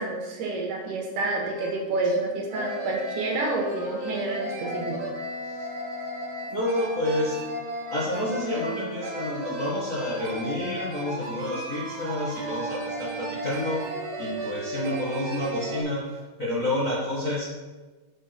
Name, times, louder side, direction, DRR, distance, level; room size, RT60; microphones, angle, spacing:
voice 1, 0.0-5.0, right 2 dB, 75° right, 0 dB, 3.0 m, -29 dB
sound 1, 1.2-1.3 1.5-1.7 2.0-2.2 2.5-15.8, right 1 dB, 45° right, 2.1 m, -34 dB
voice 2, 6.5-7.4 7.9-13.9 14.2-17.5, left 1 dB, 30° left, -7 dB, 1.7 m, -29 dB
6.6 x 6.4 x 6.1 m, 1.3 s
omnidirectional pair, 3.8 m